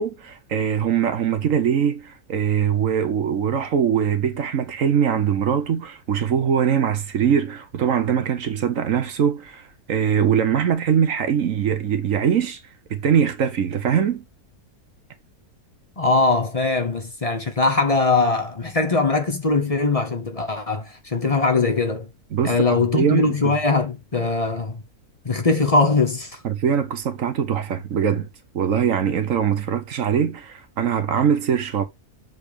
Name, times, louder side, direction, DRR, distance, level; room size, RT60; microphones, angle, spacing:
voice 1, 0.0-12.6 12.9-14.2 22.3-23.5 26.4-28.3 28.5-31.8, right 8 dB, 60° right, 1.2 m, -22 dB
voice 2, 16.0-22.1 22.4-24.8 25.2-26.4, left 3 dB, 30° left, 0.8 m, -21 dB
6.7 x 3.6 x 5.0 m
omnidirectional pair, 1.6 m